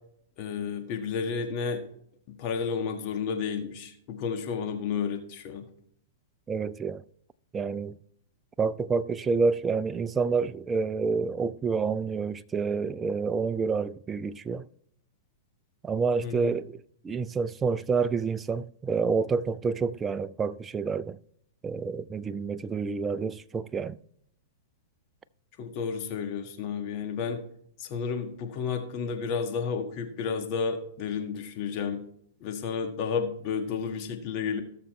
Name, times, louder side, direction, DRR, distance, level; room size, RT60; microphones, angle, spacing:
voice 1, 0.4-1.8 2.4-5.7 16.2-16.5 25.6-27.4 27.8-32.0 32.4-34.6, left 6 dB, 45° left, 1.6 m, -31 dB
voice 2, 6.5-7.0 7.5-8.0 8.6-14.6 15.8-16.8 17.0-21.2 21.6-24.0, right 5 dB, 20° right, 0.4 m, -28 dB
17.5 x 6.8 x 3.2 m
hypercardioid pair, 115°, 0 cm